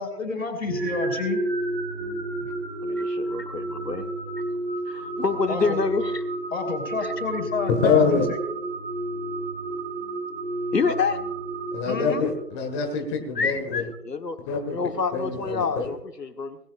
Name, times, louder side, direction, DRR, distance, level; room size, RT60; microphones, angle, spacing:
voice 1, 0.0-1.4 2.9-3.0 5.5-5.8 6.5-8.4 11.9-12.3, left 4 dB, 55° left, 2 dB, 5.7 m, -29 dB
sound 1, 0.7-12.6, right 2 dB, 40° right, 4.9 m, -31 dB
voice 2, 2.8-4.1 4.9-6.2 7.0-7.1 10.7-11.2 13.3-14.4 14.7-16.6, left 4 dB, 90° left, 8 dB, 1.4 m, -27 dB
voice 3, 7.7-8.3 11.7-13.8 14.5-14.8 15.1-15.9, left 5 dB, 20° left, 2 dB, 1.7 m, -25 dB
20.0 x 16.0 x 2.5 m, 0.77 s
figure-of-eight pair, 150°, 47 cm